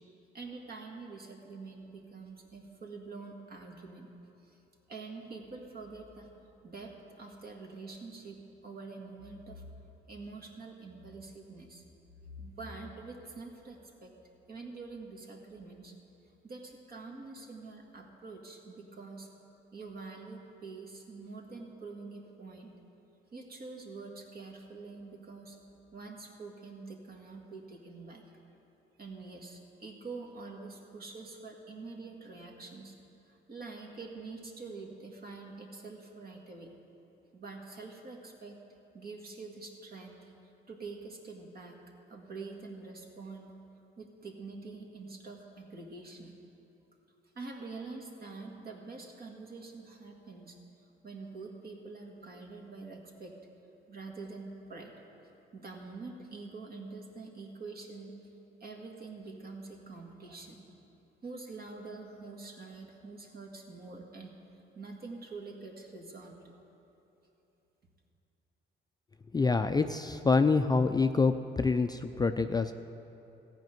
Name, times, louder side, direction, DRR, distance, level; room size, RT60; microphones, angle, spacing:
voice 1, 0.3-4.1 4.4-4.6 4.9-6.3 6.6-9.7 10.1-11.8 12.2-14.1 14.5-15.9 16.4-19.3 19.7-22.7 23.3-25.6 25.9-28.3 29.0-32.9 33.3-36.7 37.3-38.6 38.9-40.3 40.7-41.8 42.1-43.5 44.0-46.3 47.3-50.6 51.0-53.3 53.9-54.9 55.5-58.2 58.6-60.7 61.2-64.3 64.7-66.4, right 3 dB, 50° right, 1 dB, 1.8 m, -46 dB
voice 2, 69.3-72.7, left 4 dB, 20° left, 8 dB, 0.4 m, -26 dB
14.5 x 5.2 x 9.1 m, 2.9 s
cardioid pair, 90°, 20 cm